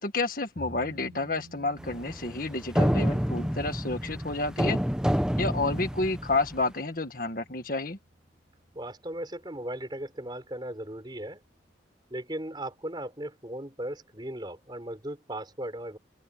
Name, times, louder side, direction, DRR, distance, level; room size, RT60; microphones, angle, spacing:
voice 1, 0.0-4.8 5.4-8.0, left 3 dB, 50° left, 1.8 m, -30 dB
sound 1, 0.6-9.7 10.0-10.1, right 1 dB, 50° right, 4.8 m, -51 dB
sound 2, 1.8-6.6, equal, 5° right, 0.9 m, -28 dB
voice 2, 8.7-11.4 12.1-16.0, right 1 dB, 25° right, 4.6 m, -37 dB
head